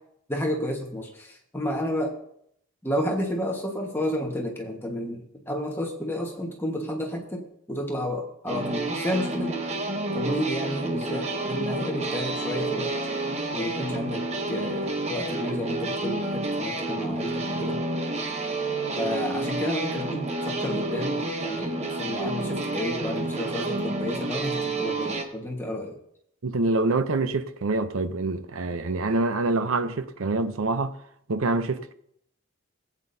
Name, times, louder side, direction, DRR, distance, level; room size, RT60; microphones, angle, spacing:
voice 1, 0.3-2.1 2.8-9.6 10.1-12.9 13.5-17.8 19.0-26.0, left 1 dB, 10° left, 1.4 m, -31 dB
sound 1, 8.5-25.2, right 2 dB, 30° right, 0.9 m, -29 dB
voice 2, 26.4-31.0 31.3-31.9, right 3 dB, 75° right, 0.6 m, -26 dB
17.0 x 8.4 x 2.7 m
head